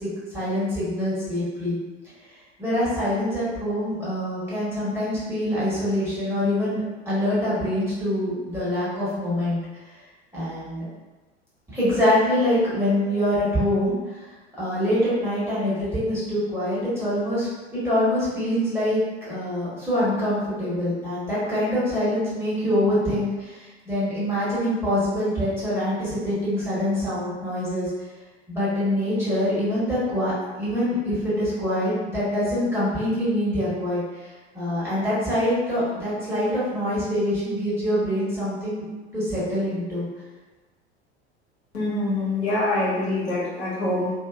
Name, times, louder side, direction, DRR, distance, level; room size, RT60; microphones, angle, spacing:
voice 1, 0.0-1.7 2.6-9.6 10.3-10.9 11.7-13.9 14.6-19.0 19.3-27.9 28.5-34.0 34.5-38.8 39.1-40.1, left 1 dB, 5° right, -11 dB, 1.3 m, -25 dB
voice 2, 41.7-44.1, left 2 dB, 70° left, -9 dB, 1.3 m, -25 dB
2.7 x 2.6 x 2.4 m, 1.2 s
figure-of-eight pair, 80°, 34 cm